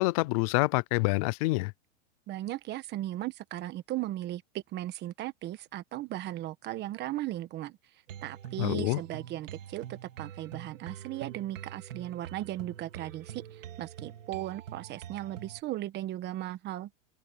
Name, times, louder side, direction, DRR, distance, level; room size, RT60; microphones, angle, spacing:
voice 1, 0.0-1.7 8.6-9.0, left 24 dB, 30° left, 0.4 m, -27 dB
voice 2, 2.3-7.8 8.2-16.9, right 14 dB, 25° right, 1.3 m, -37 dB
sound 1, 8.1-15.6, right 10 dB, 80° right, 4.2 m, -45 dB
open air
supercardioid pair, 150°, 38 cm